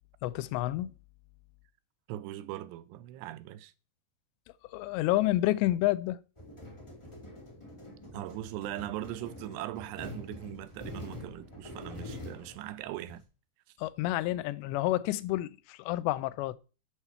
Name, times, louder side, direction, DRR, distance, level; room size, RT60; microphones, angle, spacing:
voice 1, 0.2-0.9 4.7-6.2 13.8-16.6, left 16 dB, 85° left, 2.7 m, -29 dB
voice 2, 2.1-3.7 8.1-13.2, right 14 dB, 85° right, 2.7 m, -40 dB
sound 1, 6.4-13.2, left 1 dB, 50° left, 0.3 m, -45 dB
8.2 x 4.4 x 7.1 m
omnidirectional pair, 5.0 m